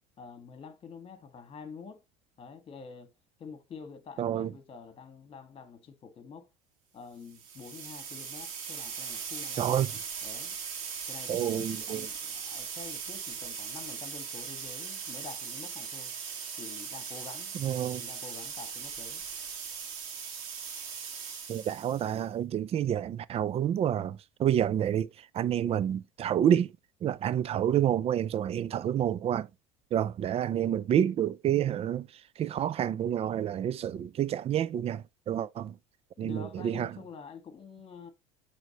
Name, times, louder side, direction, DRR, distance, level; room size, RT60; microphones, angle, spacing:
voice 1, 0.2-2.0 2.4-3.1 3.4-6.5 6.9-10.6 11.1-16.1 16.6-17.5 18.0-19.2 36.2-38.1, left 5 dB, 35° left, 1.7 m, -47 dB
voice 2, 4.2-4.5 9.6-9.9 11.3-12.1 17.6-18.0 21.5-25.1 25.3-26.7 27.0-29.5 29.9-32.1 32.4-35.7 36.2-36.9, right 10 dB, 35° right, 0.5 m, -28 dB
sound 1, 7.3-22.2, right 6 dB, 75° right, 1.9 m, -39 dB
8.8 x 3.5 x 3.0 m
hypercardioid pair, 85°, 17 cm